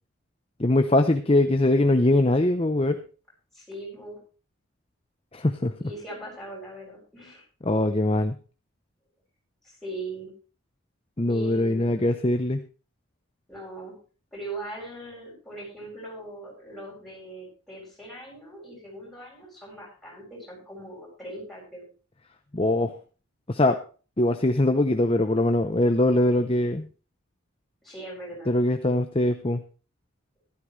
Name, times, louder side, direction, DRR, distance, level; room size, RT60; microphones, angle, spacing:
voice 1, 0.6-3.0 5.3-5.8 7.6-8.4 11.2-12.6 22.5-22.9 23.5-23.8 24.2-26.9 28.5-29.6, left 1 dB, 25° left, 8 dB, 0.7 m, -22 dB
voice 2, 3.5-4.2 5.8-7.5 9.6-10.3 11.3-12.1 13.5-14.0 14.3-21.9 27.8-28.5, right 1 dB, ahead, -5 dB, 7.9 m, -40 dB
15.0 x 12.5 x 3.3 m, 0.36 s
head